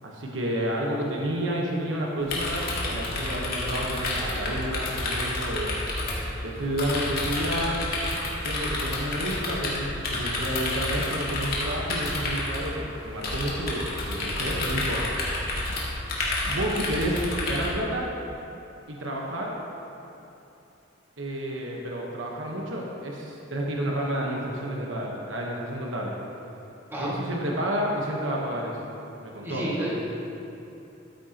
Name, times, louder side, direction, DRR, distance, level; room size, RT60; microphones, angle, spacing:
voice 1, 0.0-5.7 6.4-7.8 8.4-15.1 16.4-18.1 18.9-19.5 21.2-26.1 27.0-28.8 29.2-30.0, right 1 dB, 70° right, -2 dB, 1.2 m, -30 dB
sound 1, 2.2-17.7, left 2 dB, 50° left, 1.9 m, -30 dB
voice 2, 29.4-30.0, right 1 dB, 10° right, -7 dB, 2.0 m, -30 dB
13.0 x 8.9 x 2.9 m, 2.8 s
head